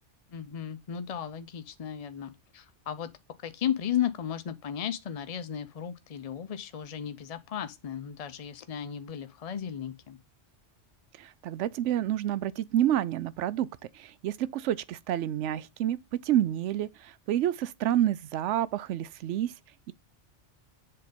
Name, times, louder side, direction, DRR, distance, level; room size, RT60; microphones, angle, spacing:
voice 1, 0.3-3.1 3.4-10.2, left 9 dB, 55° left, 0.4 m, -35 dB
voice 2, 11.2-13.7 13.9-16.0 16.2-19.5, right 11 dB, 85° right, 0.9 m, -28 dB
7.7 x 3.6 x 5.2 m
omnidirectional pair, 1.2 m